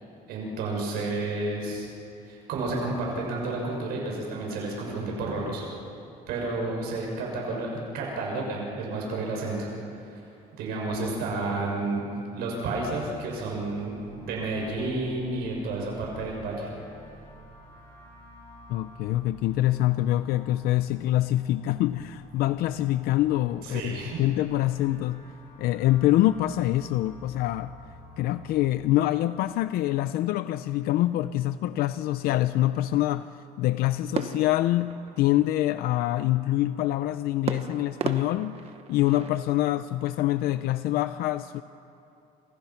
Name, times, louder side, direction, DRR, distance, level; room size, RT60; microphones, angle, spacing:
voice 1, 0.3-1.9 2.2-5.6 6.3-9.7 10.0-10.2 10.6-12.0 12.3-13.9 14.2-16.7 23.6-24.2, right 2 dB, 85° right, -1 dB, 6.6 m, -31 dB
sound 1, 12.8-28.6, equal, 30° left, 7.3 m, -49 dB
voice 2, 18.7-25.2 25.6-27.7 28.2-33.3 33.6-41.6, left 15 dB, 80° left, 12 dB, 0.6 m, -25 dB
sound 2, 34.1-35.7 37.5-39.5, right 7 dB, 40° right, 1.2 m, -35 dB
29.0 x 27.5 x 5.9 m, 2.7 s
cardioid pair, 155°, 16 cm